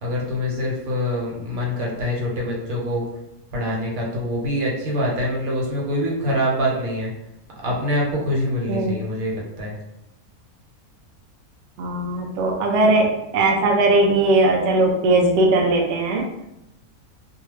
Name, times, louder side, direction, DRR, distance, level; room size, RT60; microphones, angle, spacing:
voice 1, 0.0-3.0 3.5-7.1 7.6-9.8, equal, 85° right, -3 dB, 1.3 m, -24 dB
voice 2, 11.8-16.5, right 2 dB, 65° right, 1 dB, 0.8 m, -19 dB
2.7 x 2.2 x 3.1 m, 0.86 s
omnidirectional pair, 1.5 m